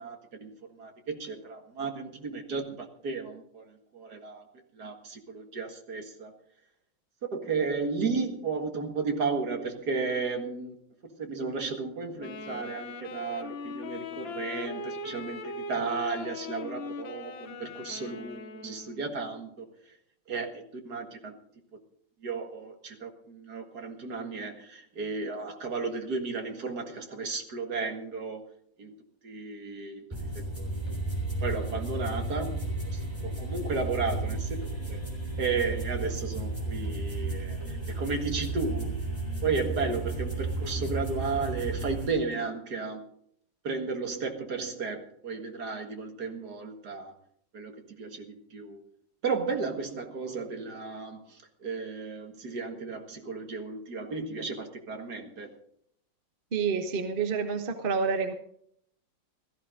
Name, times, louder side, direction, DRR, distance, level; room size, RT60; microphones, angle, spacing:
voice 1, 0.0-4.4 4.7-6.3 7.3-10.8 11.1-20.0 20.3-21.3 22.2-28.5 28.8-28.9 29.2-30.1 30.3-30.8 31.4-35.0 35.4-39.1 39.4-43.0 43.6-47.1 47.5-48.9 49.2-55.6, right 4 dB, 55° right, 5 dB, 2.3 m, -34 dB
Wind instrument woodwind instrument, 12.2-19.1, left 4 dB, 85° left, 1.9 m, -40 dB
sound 1, 30.1-42.1, right 2 dB, 15° right, 3.9 m, -33 dB
voice 2, 56.5-58.3, right 5 dB, 35° right, 7 dB, 1.2 m, -28 dB
17.5 x 14.0 x 3.8 m, 0.66 s
omnidirectional pair, 2.0 m